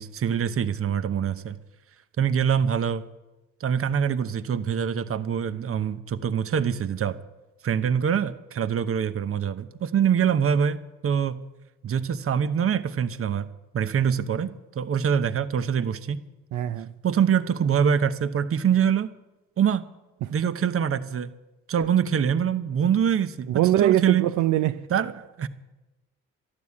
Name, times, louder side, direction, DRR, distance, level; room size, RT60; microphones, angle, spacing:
voice 1, 0.0-1.6 2.2-3.0 3.6-7.2 7.6-11.4 11.8-13.5 13.7-16.2 17.0-19.1 19.6-19.9 20.3-21.3 21.7-24.3 24.9-25.5, right 8 dB, 50° right, 1.0 m, -24 dB
voice 2, 16.5-16.9 23.5-24.9, right 13 dB, 75° right, 0.6 m, -22 dB
13.0 x 11.5 x 8.5 m
cardioid pair, 90°, 30 cm